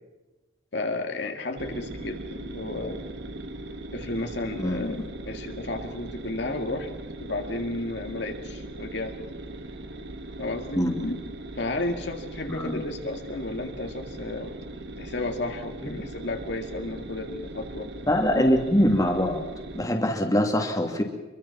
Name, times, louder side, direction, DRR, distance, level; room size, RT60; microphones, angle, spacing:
voice 1, 0.7-3.1 3.9-6.9 7.2-9.1 10.4-11.2 11.6-14.5 15.0-17.9 18.4-18.5, left 2 dB, 65° left, 4 dB, 2.1 m, -32 dB
sound 1, 1.6-19.8, right 1 dB, 60° right, 1.6 m, -39 dB
voice 2, 4.6-5.1 10.7-11.0 12.5-12.8 18.1-19.4 19.7-21.0, equal, 20° left, 2 dB, 2.4 m, -23 dB
25.5 x 23.0 x 5.9 m, 1.1 s
head